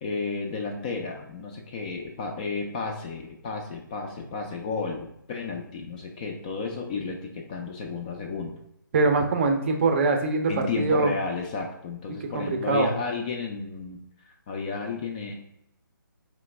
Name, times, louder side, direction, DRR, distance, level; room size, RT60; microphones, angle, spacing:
voice 1, 0.0-8.5 10.5-14.0 14.5-15.3, left 4 dB, 20° left, 2 dB, 0.4 m, -32 dB
voice 2, 8.9-11.1 12.3-12.9, right 3 dB, 35° right, 4 dB, 0.5 m, -23 dB
3.9 x 3.1 x 3.2 m, 0.77 s
figure-of-eight pair, 150°, 11 cm